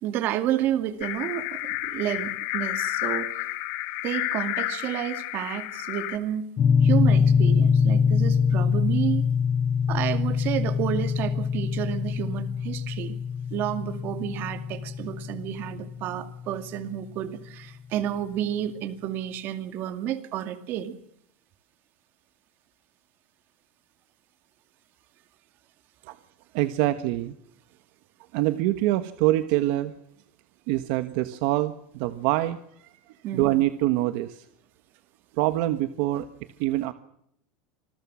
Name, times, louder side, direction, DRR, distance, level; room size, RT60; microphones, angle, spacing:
voice 1, 0.0-3.5 4.0-6.5 6.8-9.3 9.9-13.2 13.5-20.9 33.2-33.6, right 11 dB, 35° right, 10 dB, 2.2 m, -30 dB
sound 1, 1.0-6.2, left 17 dB, 50° left, 2.4 m, -31 dB
G thick strs, 6.6-16.7, left 6 dB, 20° left, 1.8 m, -24 dB
voice 2, 26.5-27.3 28.3-29.9 30.7-32.6 33.3-34.5 35.4-36.3 36.6-36.9, right 16 dB, 55° right, 10 dB, 1.4 m, -25 dB
27.0 x 21.0 x 6.3 m, 0.71 s
supercardioid pair, 170°, 6 cm